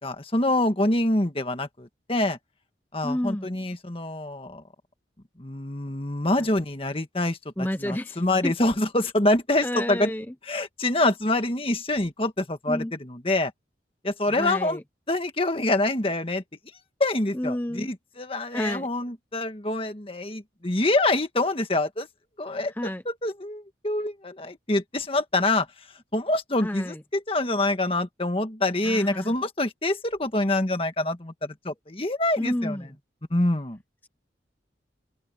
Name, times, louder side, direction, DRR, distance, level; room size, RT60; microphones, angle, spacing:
voice 1, 0.0-2.4 2.9-4.6 5.4-7.4 7.8-10.1 10.5-13.5 14.0-14.8 15.1-16.4 17.0-22.1 22.4-22.7 23.0-25.7 26.1-32.8 33.3-33.8, left 2 dB, 30° left, 1.6 m, -26 dB
voice 2, 3.0-3.5 6.4-6.5 7.6-8.5 9.6-10.3 12.7-12.9 14.3-14.8 17.3-17.9 18.5-18.9 22.8-23.0 26.6-27.0 28.8-29.3 32.4-32.9, left 1 dB, 10° left, 0.9 m, -30 dB
head